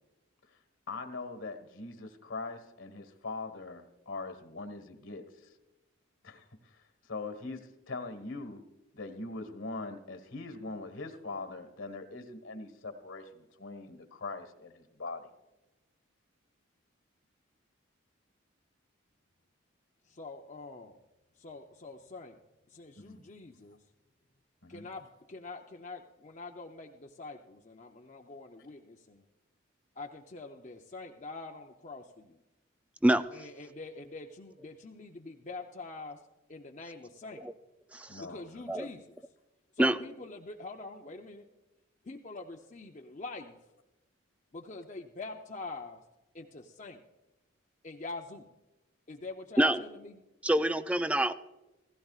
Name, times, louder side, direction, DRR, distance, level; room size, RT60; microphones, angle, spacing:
voice 1, 0.9-5.5 6.2-6.7 7.1-8.6 8.9-15.3 23.0-23.2 24.6-24.9 38.1-38.9, left 3 dB, 75° left, 7 dB, 1.5 m, -42 dB
voice 2, 20.1-21.0 21.4-22.4 22.7-23.8 24.7-29.2 30.0-32.4 33.3-36.2 36.5-37.4 38.2-39.2 39.7-41.5 42.0-43.6 44.5-46.0 46.3-47.0 47.8-48.5 49.1-50.2, left 3 dB, 35° left, 2 dB, 0.6 m, -45 dB
voice 3, 37.9-38.2 38.7-38.9 39.8-40.0 49.6-49.8 50.4-51.3, right 1 dB, 5° right, 12 dB, 0.3 m, -25 dB
16.0 x 16.0 x 2.4 m, 1.0 s
head